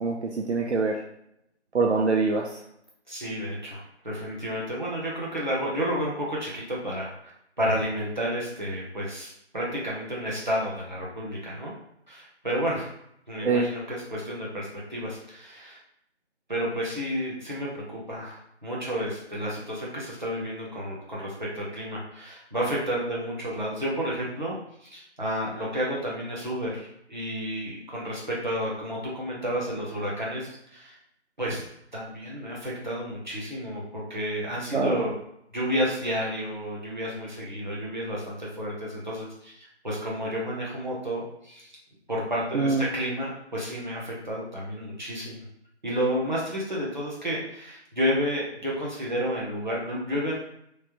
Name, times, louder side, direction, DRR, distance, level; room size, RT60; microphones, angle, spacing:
voice 1, 0.0-1.0 1.7-2.6 13.4-13.7 34.7-35.0 42.5-42.8, right 4 dB, 70° right, -1 dB, 0.5 m, -24 dB
voice 2, 3.1-7.3 7.6-11.7 12.1-12.9 13.3-15.8 16.5-24.6 24.8-31.0 31.4-31.6 31.9-35.1 35.5-41.7 42.1-45.4 45.8-50.3, equal, 40° right, -5 dB, 0.8 m, -31 dB
3.1 x 2.1 x 2.9 m, 0.74 s
figure-of-eight pair, 175°, 35 cm